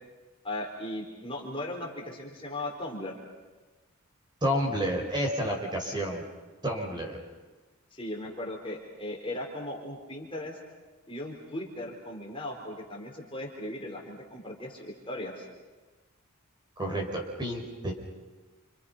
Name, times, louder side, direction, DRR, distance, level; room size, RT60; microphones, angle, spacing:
voice 1, 0.4-3.2 7.9-10.6 11.1-15.5, left 1 dB, 25° left, -1 dB, 4.3 m, -37 dB
voice 2, 4.4-6.2 6.6-7.2 16.8-17.9, equal, 20° right, 1 dB, 5.1 m, -30 dB
30.0 x 28.0 x 5.7 m, 1.3 s
head